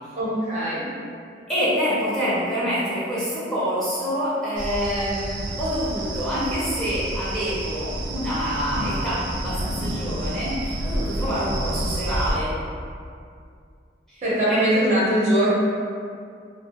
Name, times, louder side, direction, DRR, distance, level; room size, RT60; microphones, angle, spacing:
voice 1, 0.1-0.8 14.2-15.5, right 1 dB, 40° right, -8 dB, 0.7 m, -21 dB
voice 2, 1.5-12.5 14.1-14.2 14.5-14.6, equal, 5° left, -11 dB, 0.5 m, -26 dB
sound 1, 4.6-12.3, right 1 dB, 85° right, 0.4 m, -29 dB
2.3 x 2.1 x 2.8 m, 2.3 s
head